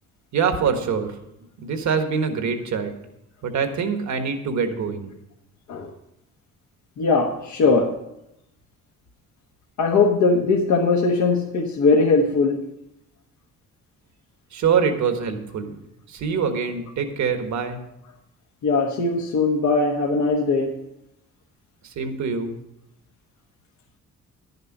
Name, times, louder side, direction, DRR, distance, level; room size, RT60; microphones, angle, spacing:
voice 1, 0.3-1.1 1.6-2.9 3.4-5.1 14.5-15.8 16.1-17.8 21.8-22.5, right 6 dB, 70° right, 6 dB, 1.5 m, -24 dB
voice 2, 7.0-8.0 9.8-12.6 18.6-20.8, left 3 dB, 75° left, 0 dB, 1.3 m, -20 dB
11.0 x 6.7 x 6.5 m, 0.85 s
cardioid pair, 90°, 30 cm